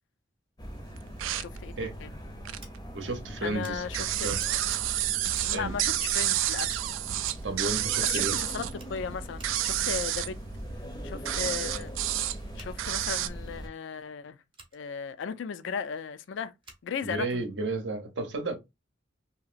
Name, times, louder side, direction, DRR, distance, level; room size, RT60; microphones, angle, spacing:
sound 1, 0.6-13.7, equal, 20° left, 0.6 m, -41 dB
sound 2, 1.0-2.8 3.1-13.3, right 13 dB, 90° right, 0.3 m, -30 dB
voice 1, 1.4-2.1 3.4-4.7 5.4-6.9 8.0-10.4 11.0-11.9 12.5-14.4 14.7-16.5 16.8-17.4, left 6 dB, 75° left, 0.4 m, -36 dB
Scissors, 2.5-2.7 3.6-3.7 4.4-4.8 5.3-5.6 6.0-6.3 6.7-7.5 8.2-8.4 8.7-9.8 12.5-12.7 14.5-14.8 16.6-16.8, right 3 dB, 25° right, 0.7 m, -53 dB
voice 2, 2.9-3.8 4.2-4.4 5.5-5.7 7.4-8.4 17.0-18.6, right 2 dB, 70° right, 0.7 m, -32 dB
2.8 x 2.7 x 2.4 m
head